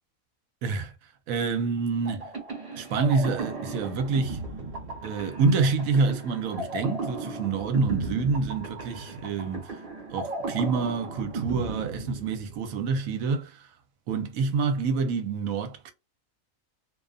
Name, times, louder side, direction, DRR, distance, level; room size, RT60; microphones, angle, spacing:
voice 1, 0.6-0.9 1.3-2.3 2.7-4.4 5.0-9.8 10.1-13.7 14.1-15.9, right 4 dB, 75° right, 1.0 m, -27 dB
sound 1, 2.0-12.7, right 3 dB, 40° right, 1.4 m, -35 dB
2.5 x 2.4 x 2.3 m
omnidirectional pair, 1.5 m